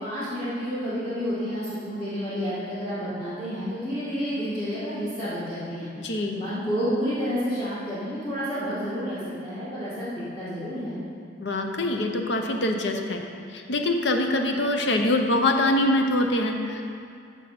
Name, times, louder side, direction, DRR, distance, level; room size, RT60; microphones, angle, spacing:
voice 1, 0.0-10.1 10.4-11.0, equal, 25° left, -12 dB, 2.0 m, -30 dB
voice 2, 6.0-6.4 11.4-13.2 13.5-16.8, left 1 dB, 80° left, 3 dB, 0.8 m, -24 dB
14.5 x 5.0 x 4.2 m, 2.4 s
head